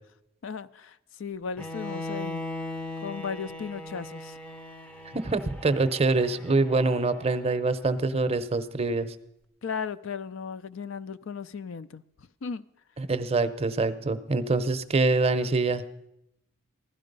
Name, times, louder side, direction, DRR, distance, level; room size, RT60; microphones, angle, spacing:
voice 1, 0.4-2.4 3.0-4.3 9.6-12.0 12.4-12.6, left 6 dB, 70° left, 0.4 m, -36 dB
Bowed string instrument, 1.6-7.6, left 1 dB, 5° left, 0.6 m, -39 dB
voice 2, 5.1-9.1 13.0-15.8, right 3 dB, 30° right, 0.7 m, -25 dB
15.5 x 12.0 x 5.3 m
head